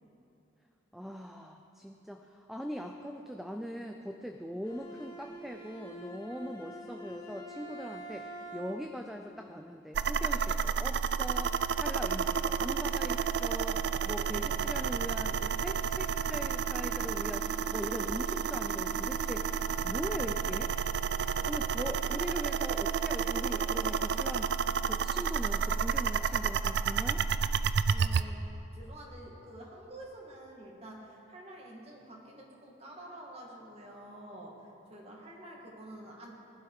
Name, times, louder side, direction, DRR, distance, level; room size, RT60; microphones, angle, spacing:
voice 1, 0.9-19.5 19.8-20.7 21.5-24.5 24.9-27.2, equal, ahead, 4 dB, 0.5 m, -41 dB
Bowed string instrument, 4.6-9.0, right 1 dB, 25° left, 1.9 m, -46 dB
sound 1, 9.9-28.2, right 6 dB, 70° right, 0.4 m, -31 dB
voice 2, 27.8-28.4 28.7-36.3, right 1 dB, 35° right, -2 dB, 2.2 m, -48 dB
18.5 x 11.5 x 5.0 m, 2.8 s
head